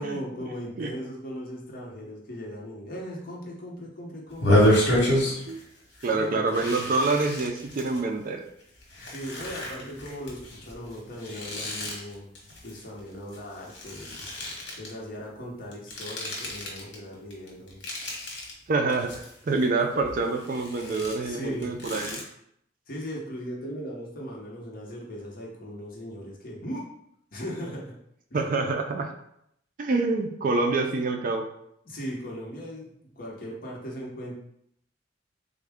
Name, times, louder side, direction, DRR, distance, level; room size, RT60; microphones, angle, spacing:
voice 1, 0.0-4.9 6.1-6.9 9.0-12.3 12.6-14.2 14.8-17.9 21.2-21.7 22.9-26.8 27.3-28.0 28.3-28.4 31.8-34.3, equal, 50° left, -2 dB, 0.8 m, -38 dB
sound 1, 4.3-5.6 5.9-6.1 6.5-8.0 8.6-13.4 13.6-14.9 15.7-17.0 17.3-18.5 18.9-19.6 20.0-22.2, left 1 dB, 80° left, 1.0 m, -28 dB
voice 2, 6.0-8.4 18.7-22.2 28.3-29.1 29.8-31.5, right 3 dB, 50° right, 5 dB, 0.4 m, -26 dB
3.5 x 2.1 x 3.4 m, 0.73 s
head